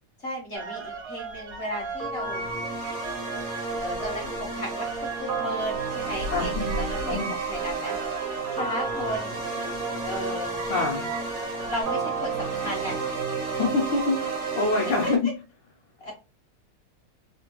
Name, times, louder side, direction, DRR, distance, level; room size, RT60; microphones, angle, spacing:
voice 1, 0.2-2.4 3.8-8.0 8.5-9.3 10.1-10.6 11.6-13.0 15.0-15.1 16.0-16.1, equal, 50° left, 0.8 m, -34 dB
sound 1, 0.5-11.8, right 3 dB, 65° right, 1.1 m, -37 dB
sound 2, 2.0-15.1, right 4 dB, 45° right, 1.0 m, -31 dB
voice 2, 6.3-6.8 7.1-7.3 10.7-11.1 13.5-15.3, left 3 dB, 75° left, 1.1 m, -26 dB
3.6 x 2.2 x 2.9 m
omnidirectional pair, 2.4 m